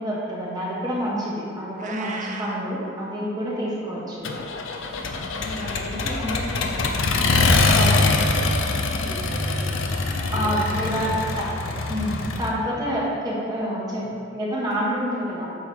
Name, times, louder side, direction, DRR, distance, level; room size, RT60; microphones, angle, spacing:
voice 1, 0.0-4.2 7.7-8.0 10.3-14.1 14.3-15.4, equal, 20° right, -7 dB, 1.3 m, -27 dB
Meow, 1.8-2.6, right 4 dB, 35° right, 0.5 m, -35 dB
Accelerating revving vroom, 4.2-12.5, left 3 dB, 65° left, 0.6 m, -23 dB
voice 2, 5.1-8.1 8.4-11.2 12.6-12.9, left 1 dB, 30° left, -6 dB, 1.4 m, -37 dB
8.6 x 3.3 x 6.0 m, 2.4 s
head